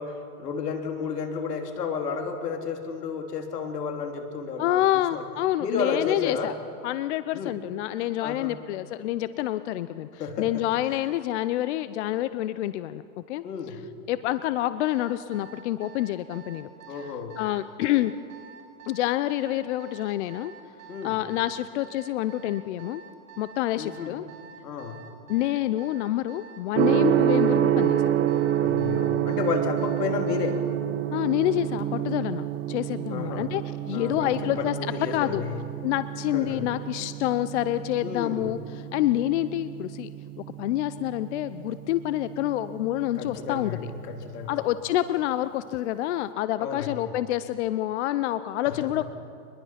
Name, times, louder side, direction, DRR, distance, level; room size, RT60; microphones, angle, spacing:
voice 1, 0.0-4.8 5.1-5.2 5.6-6.5 7.3-7.6 8.2-8.6 10.2-10.6 13.4-13.8 16.9-17.4 20.9-21.2 23.7-24.1 24.6-25.0 28.6-30.6 33.1-33.5 33.9-35.5 36.3-36.7 38.0-38.5 43.2-44.6 46.6-47.0 48.6-48.9, left 5 dB, 80° left, 4 dB, 3.2 m, -32 dB
voice 2, 4.6-6.5 6.8-10.1 10.4-13.4 14.1-16.7 17.4-18.1 18.9-20.5 21.0-23.0 23.4-24.2 25.3-28.0 31.1-35.4 35.8-38.6 38.9-40.1 40.4-43.8 44.5-49.0, left 14 dB, 50° left, 13 dB, 0.7 m, -27 dB
Alarm, 14.9-30.7, right 7 dB, 55° right, 3.3 m, -47 dB
Gong, 26.8-44.6, right 12 dB, 25° right, 1.0 m, -29 dB
24.0 x 21.0 x 5.9 m, 2.5 s
hypercardioid pair, 140°, 46 cm